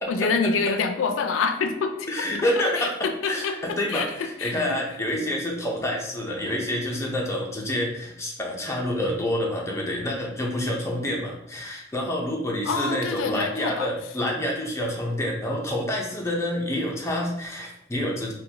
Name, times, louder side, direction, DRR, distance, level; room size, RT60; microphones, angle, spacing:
voice 1, 0.1-2.1 2.8-4.8 12.7-13.9, left 4 dB, 80° left, 7 dB, 0.4 m, -27 dB
voice 2, 2.1-2.9 3.3-18.3, left 1 dB, 15° left, -2 dB, 0.6 m, -28 dB
3.8 x 2.2 x 2.8 m, 0.80 s
head